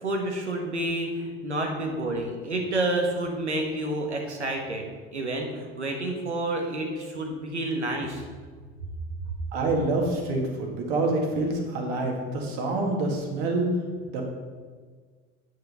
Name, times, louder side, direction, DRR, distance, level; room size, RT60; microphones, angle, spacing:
voice 1, 0.0-4.8 5.1-8.2, right 1 dB, 85° right, 2 dB, 1.4 m, -29 dB
voice 2, 9.5-13.7 14.1-14.3, right 2 dB, 65° right, 1 dB, 2.1 m, -27 dB
9.3 x 6.4 x 5.6 m, 1.6 s
figure-of-eight pair, 65°, 33 cm